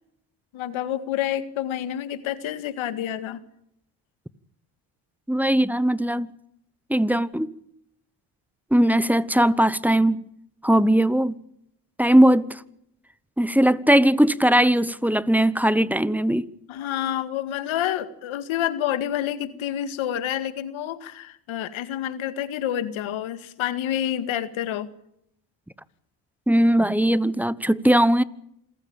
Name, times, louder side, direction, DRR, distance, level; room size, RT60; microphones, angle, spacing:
voice 1, 0.5-3.4 16.7-24.9, left 11 dB, 70° left, 2.1 m, -28 dB
voice 2, 5.3-6.3 6.9-7.5 8.7-10.2 10.6-11.4 12.0-12.6 13.4-16.5 26.5-28.2, right 1 dB, 5° right, 1.0 m, -19 dB
27.0 x 14.5 x 8.9 m
supercardioid pair, 75°, 49 cm